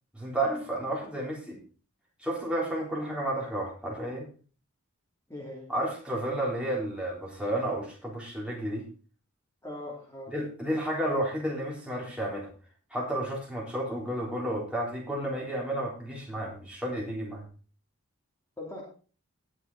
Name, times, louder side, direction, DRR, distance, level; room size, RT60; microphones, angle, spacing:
voice 1, 0.1-1.6 2.2-4.3 5.7-8.9 10.3-12.5 12.9-17.4, right 1 dB, 5° right, -3 dB, 3.8 m, -32 dB
voice 2, 5.3-5.7 9.6-10.3 18.6-18.8, left 1 dB, 15° left, -4 dB, 3.1 m, -40 dB
18.5 x 6.3 x 4.1 m, 0.38 s
head